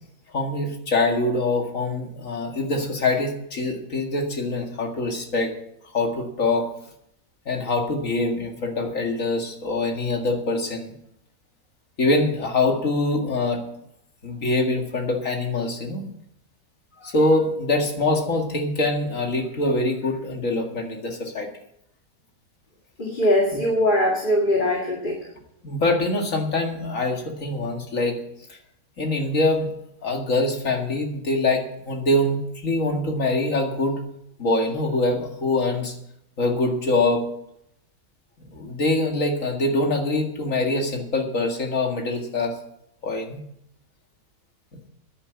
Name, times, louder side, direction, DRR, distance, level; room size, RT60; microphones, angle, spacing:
voice 1, 0.3-5.5 5.9-6.7 7.5-10.9 12.0-13.6 14.2-16.0 17.0-21.5 25.6-28.2 29.0-29.7 30.0-34.0 34.4-35.9 36.4-37.2 38.5-42.5 43.0-43.4, left 2 dB, 55° left, 2 dB, 2.4 m, -24 dB
voice 2, 23.0-25.2, left 1 dB, 30° left, -1 dB, 2.3 m, -21 dB
10.5 x 9.9 x 8.2 m, 0.76 s
omnidirectional pair, 1.6 m